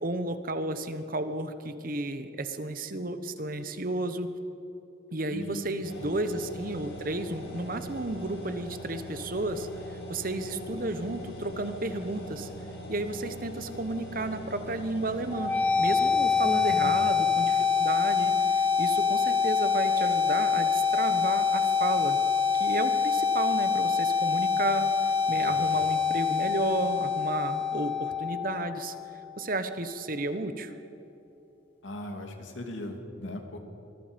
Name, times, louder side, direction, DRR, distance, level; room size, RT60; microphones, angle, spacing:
voice 1, 0.0-4.3 5.1-12.5 12.9-22.2 22.5-28.9 29.4-30.7, right 2 dB, 45° right, 10 dB, 1.1 m, -32 dB
voice 2, 5.3-5.7 6.0-6.1 16.4-17.0 25.4-25.8 31.8-33.6, left 1 dB, 75° left, 4 dB, 2.5 m, -39 dB
sound 1, 5.8-17.1, equal, 60° left, 5.4 m, -42 dB
sound 2, 15.3-29.3, left 6 dB, 10° left, 3.1 m, -25 dB
25.5 x 19.5 x 5.3 m, 2.9 s
head